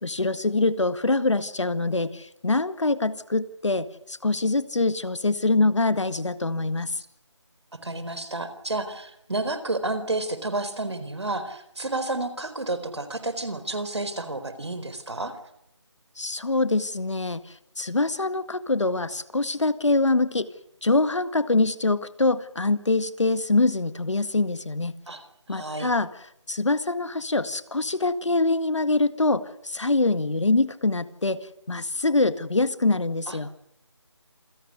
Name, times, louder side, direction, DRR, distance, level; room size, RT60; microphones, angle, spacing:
voice 1, 0.0-6.9 16.2-17.4 17.8-20.5 20.8-24.9 25.5-26.1 26.5-31.4 31.7-33.5, left 2 dB, 75° left, 13 dB, 1.9 m, -24 dB
voice 2, 7.7-15.3 25.1-25.2 25.5-25.9 33.3-33.4, right 2 dB, 65° right, 12 dB, 4.3 m, -30 dB
27.5 x 17.0 x 9.7 m, 0.77 s
figure-of-eight pair, 175°, 15 cm